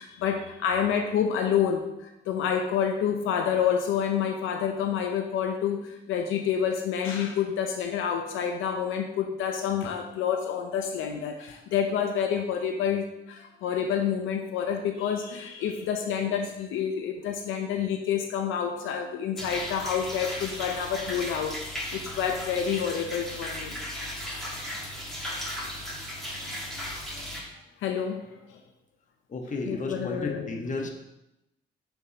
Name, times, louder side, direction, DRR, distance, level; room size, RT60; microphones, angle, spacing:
voice 1, 0.0-24.0 27.8-28.6 29.7-30.5, left 8 dB, 85° left, 5 dB, 0.7 m, -28 dB
sound 1, 19.4-27.4, left 1 dB, ahead, 2.5 m, -36 dB
voice 2, 29.3-30.9, left 3 dB, 40° left, 2 dB, 1.2 m, -32 dB
7.2 x 6.9 x 2.9 m, 0.90 s
cardioid pair, 90°, 20 cm